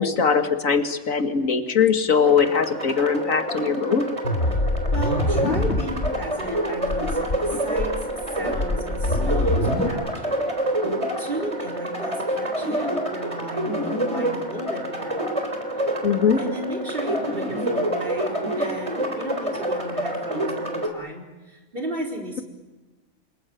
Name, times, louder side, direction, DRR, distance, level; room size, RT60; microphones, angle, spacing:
voice 1, 0.0-4.1 16.0-16.4, left 6 dB, 75° left, 7 dB, 2.3 m, -21 dB
sound 1, 2.2-20.9, right 1 dB, 25° right, 4.0 m, -27 dB
sound 2, 4.2-6.1 6.5-6.6 6.8-7.4 7.8-9.9, left 1 dB, 55° left, 2.9 m, -24 dB
voice 2, 4.9-8.1 8.3-10.5 11.2-15.2 15.8-15.9 16.4-22.4, right 1 dB, 40° right, 3 dB, 4.5 m, -34 dB
27.5 x 21.5 x 9.2 m, 1.2 s
omnidirectional pair, 1.4 m